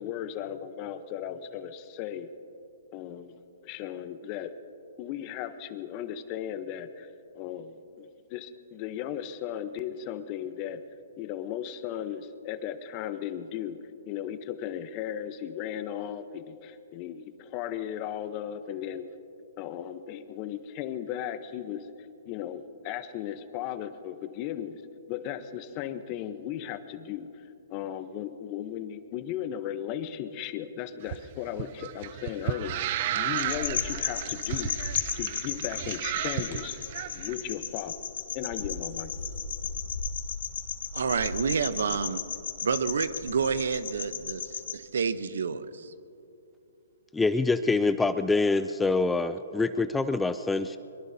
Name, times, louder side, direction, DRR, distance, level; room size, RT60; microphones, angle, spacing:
voice 1, 0.0-2.3 2.9-4.5 5.0-10.8 11.2-13.8 14.0-19.0 19.6-21.9 22.2-24.8 25.1-27.4 27.7-36.8 37.1-38.0 38.3-39.1, left 10 dB, 30° left, 11 dB, 0.9 m, -36 dB
sound 1, 31.0-37.3, right 11 dB, 45° right, 0.6 m, -33 dB
sound 2, 33.3-44.7, left 6 dB, 70° left, 1.8 m, -35 dB
voice 2, 40.9-42.2 42.6-45.9, right 5 dB, 80° right, 13 dB, 0.8 m, -29 dB
voice 3, 47.1-50.8, left 3 dB, 5° left, 11 dB, 0.3 m, -25 dB
23.0 x 22.5 x 2.8 m, 2.8 s
hypercardioid pair, 145°, 0 cm